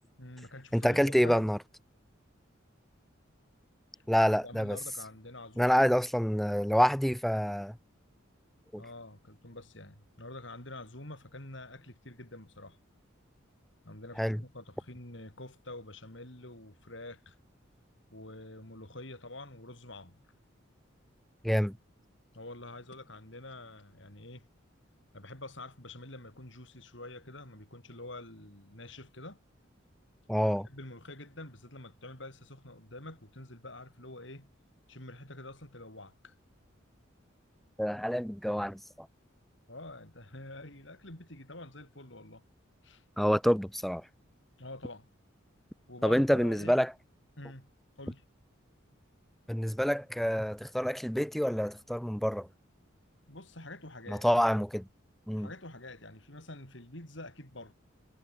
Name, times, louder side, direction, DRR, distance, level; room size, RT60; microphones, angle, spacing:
voice 1, 0.2-1.4 4.4-6.0 8.8-12.8 13.8-17.3 18.1-20.2 22.3-24.5 25.1-29.4 30.4-34.5 34.9-36.3 39.7-42.4 42.8-43.0 44.6-45.1 45.9-46.8 47.4-47.7 48.0-48.2 53.3-54.4 55.4-57.7, left 2 dB, 65° left, 6.5 m, -47 dB
voice 2, 0.7-1.6 4.1-4.8 5.6-7.8 8.7-8.8 14.2-14.4 21.4-21.8 30.3-30.7 37.8-39.1 43.2-44.0 46.0-46.9 49.5-52.5 54.1-54.9 55.3-55.5, equal, ahead, 0.4 m, -27 dB
head